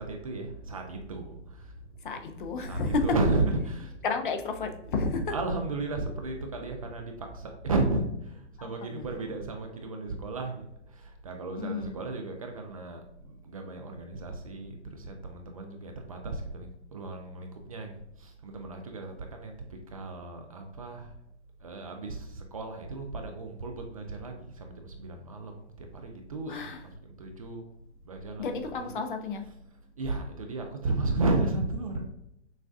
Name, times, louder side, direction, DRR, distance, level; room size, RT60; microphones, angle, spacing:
voice 1, 0.0-1.7 2.7-3.9 5.3-19.6 19.9-21.1 21.6-27.6 28.0-29.0 29.4-29.5 30.0-32.0, right 2 dB, 30° right, 3 dB, 0.4 m, -34 dB
sound 1, 0.5-7.9, right 2 dB, 55° right, 1.2 m, -50 dB
voice 2, 2.0-3.1 4.0-5.3 8.6-9.3 11.6-11.9 26.5-26.8 28.4-29.4, left 4 dB, 45° left, 6 dB, 0.6 m, -32 dB
6.3 x 2.3 x 2.4 m, 0.82 s
figure-of-eight pair, 125°, 35 cm